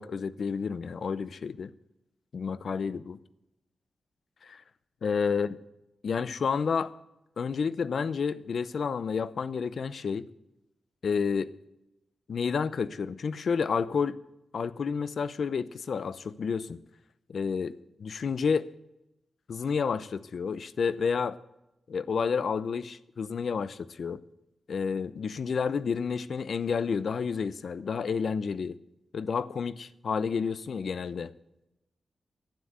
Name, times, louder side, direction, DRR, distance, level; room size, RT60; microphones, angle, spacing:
voice 1, 0.0-1.7 2.3-3.2 4.4-4.6 5.0-5.6 6.0-6.9 7.4-10.3 11.0-11.5 12.3-14.2 14.5-16.8 17.3-18.7 19.5-21.4 21.9-24.2 24.7-28.8 29.1-31.3, left 5 dB, 70° left, 16 dB, 0.7 m, -30 dB
11.5 x 9.5 x 7.9 m, 0.88 s
cardioid pair, 75°, 0 cm